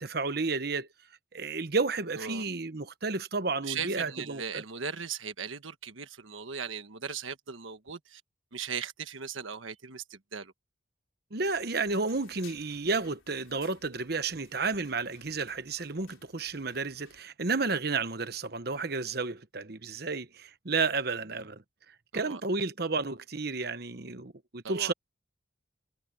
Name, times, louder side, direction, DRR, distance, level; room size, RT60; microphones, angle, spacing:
voice 1, 0.0-0.9 1.3-4.6 11.3-21.6 22.1-24.9, right 4 dB, 50° right, 1.1 m, -32 dB
voice 2, 2.1-2.4 3.6-8.2 8.5-10.5 22.1-22.4 24.6-24.9, right 6 dB, 85° right, 1.4 m, -38 dB
sound 1, 11.4-17.2, left 7 dB, 85° left, 3.8 m, -59 dB
head